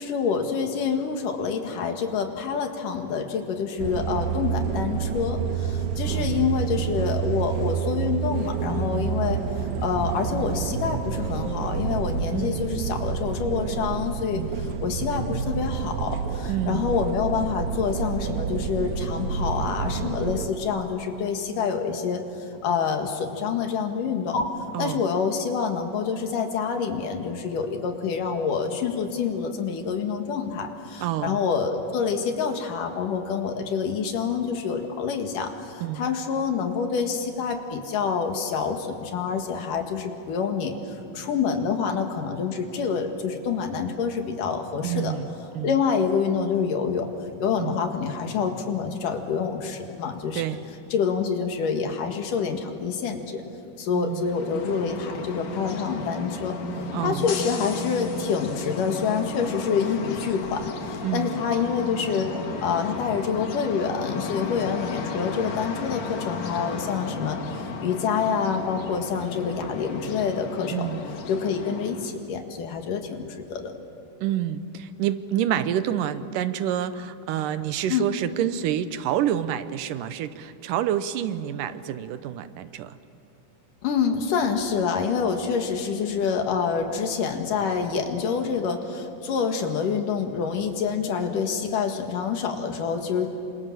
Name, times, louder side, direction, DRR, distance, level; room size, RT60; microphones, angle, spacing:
voice 1, 0.0-14.4 14.8-22.2 22.6-24.5 24.8-45.1 45.6-47.1 47.4-50.4 50.9-53.4 53.8-56.6 57.0-62.3 62.6-71.0 71.3-73.7 77.9-78.1 83.8-93.3, left 6 dB, 75° left, 5 dB, 3.4 m, -27 dB
sound 1, 3.8-20.5, right 7 dB, 70° right, 2.4 m, -28 dB
voice 2, 6.0-6.4 8.9-9.2 12.3-12.6 14.3-14.5 16.5-16.9 24.7-25.0 31.0-31.4 35.8-36.1 44.8-45.8 47.6-47.8 50.3-50.7 53.9-54.3 56.9-57.3 61.0-61.3 70.7-71.0 74.2-83.0, right 11 dB, 85° right, 12 dB, 2.5 m, -28 dB
sound 2, 54.1-72.2, left 4 dB, 60° left, 2.9 m, -34 dB
27.5 x 26.5 x 7.4 m, 2.7 s
omnidirectional pair, 3.8 m